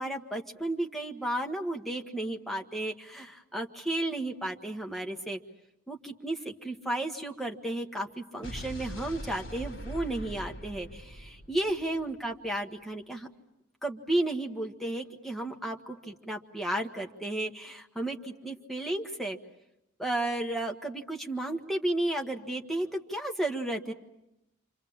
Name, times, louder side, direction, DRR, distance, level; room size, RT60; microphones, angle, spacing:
voice 1, 0.0-5.4 5.9-13.3 13.8-19.4 20.0-23.9, right 1 dB, ahead, 1 dB, 1.6 m, -33 dB
Explosion, 8.4-12.5, equal, 65° left, 3.8 m, -42 dB
29.0 x 26.0 x 7.2 m, 0.89 s
head